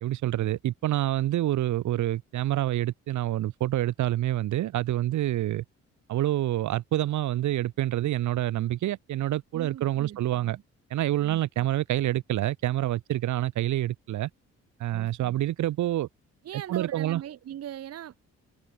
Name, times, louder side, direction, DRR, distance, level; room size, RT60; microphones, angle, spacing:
voice 1, 0.0-5.6 6.1-10.6 10.9-14.3 14.8-16.1 16.7-17.2, right 13 dB, 75° right, 1.2 m, -27 dB
voice 2, 9.5-10.6 11.2-11.4 14.9-15.3 16.4-18.2, right 11 dB, 55° right, 1.0 m, -40 dB
cardioid pair, 90°, 30 cm